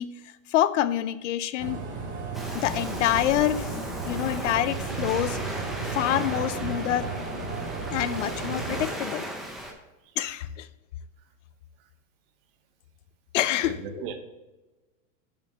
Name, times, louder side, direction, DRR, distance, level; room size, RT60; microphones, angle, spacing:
voice 1, 0.0-1.8 2.5-3.8 4.1-7.1 7.9-9.3 10.2-10.7 13.3-14.0, left 12 dB, 60° left, 16 dB, 0.6 m, -27 dB
sound 1, 1.6-8.9, right 4 dB, 25° right, 2.7 m, -34 dB
Waves surf, 2.3-9.7, right 1 dB, ahead, 0.8 m, -37 dB
voice 2, 13.6-14.2, right 7 dB, 40° right, 7 dB, 1.2 m, -37 dB
7.7 x 5.3 x 7.3 m, 1.1 s
supercardioid pair, 160°, 42 cm